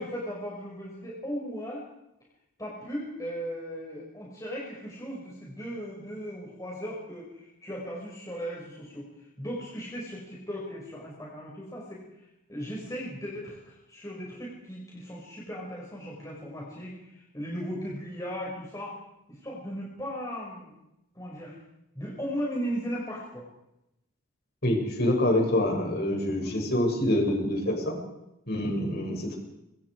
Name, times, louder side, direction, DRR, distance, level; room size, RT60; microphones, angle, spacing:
voice 1, 0.0-1.8 2.6-19.0 19.3-20.7 21.1-21.6 21.9-23.4 26.4-26.6 28.6-28.8, equal, 15° left, -4 dB, 6.4 m, -37 dB
voice 2, 24.6-28.0 28.5-29.4, left 1 dB, 50° left, 1 dB, 7.3 m, -26 dB
27.0 x 26.0 x 5.1 m, 0.87 s
head